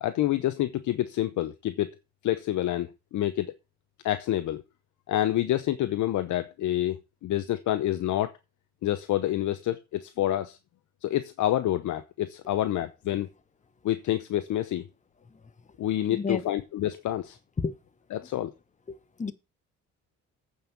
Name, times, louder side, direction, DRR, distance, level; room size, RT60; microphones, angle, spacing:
voice 1, 0.0-1.9 2.2-3.5 4.0-4.6 5.1-8.3 8.8-10.6 11.0-13.3 13.8-14.9 15.8-17.4 18.1-18.5, left 13 dB, 75° left, 0.9 m, -28 dB
voice 2, 16.1-16.4 17.6-17.7 18.9-19.3, left 4 dB, 25° left, 1.1 m, -31 dB
8.7 x 5.7 x 7.3 m
cardioid pair, 90°, 30 cm